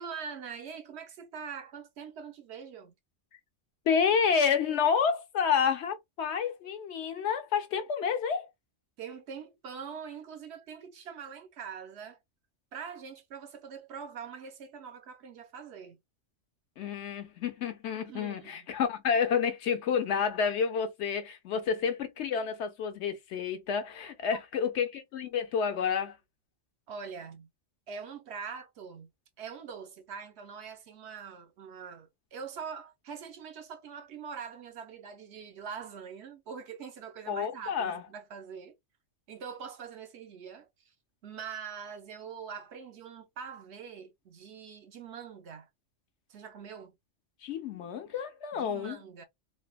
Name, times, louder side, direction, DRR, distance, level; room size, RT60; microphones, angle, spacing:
voice 1, 0.0-2.9 9.0-12.2 12.7-16.0 18.1-18.7 26.9-27.5 27.9-29.1 29.4-38.7 39.3-40.7 41.2-45.7 46.3-47.0 48.5-49.2, right 6 dB, 65° right, 0.8 m, -43 dB
voice 2, 3.9-8.5 16.8-26.2 37.3-38.0 47.4-49.0, left 6 dB, 70° left, 0.9 m, -29 dB
3.2 x 2.1 x 2.2 m
omnidirectional pair, 1.3 m